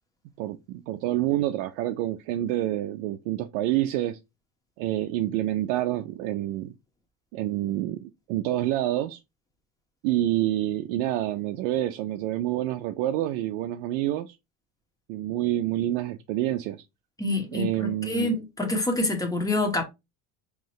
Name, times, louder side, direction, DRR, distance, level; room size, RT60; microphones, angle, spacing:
voice 1, 0.4-4.2 4.8-6.7 7.3-9.2 10.0-14.4 15.1-16.8 17.5-18.4, right 14 dB, 85° right, 0.5 m, -27 dB
voice 2, 17.2-19.8, left 2 dB, 10° left, 1.4 m, -27 dB
3.8 x 3.0 x 3.1 m
supercardioid pair, 100°, 38 cm